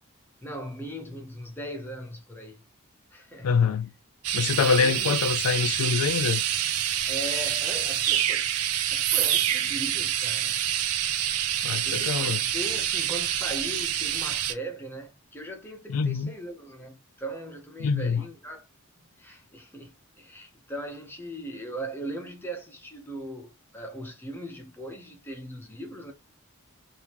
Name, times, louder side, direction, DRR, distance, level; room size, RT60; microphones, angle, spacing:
voice 1, 0.4-2.6 3.1-3.6 4.5-5.2 7.1-8.5 8.9-10.6 11.8-18.7 19.0-26.1, right 1 dB, 10° left, 0.7 m, -39 dB
voice 2, 3.4-3.9 4.3-6.4 11.6-12.4 15.9-16.3 17.8-18.2, left 6 dB, 75° left, 0.4 m, -25 dB
sound 1, 4.2-14.5, right 11 dB, 80° right, 0.5 m, -27 dB
3.5 x 2.6 x 2.9 m
head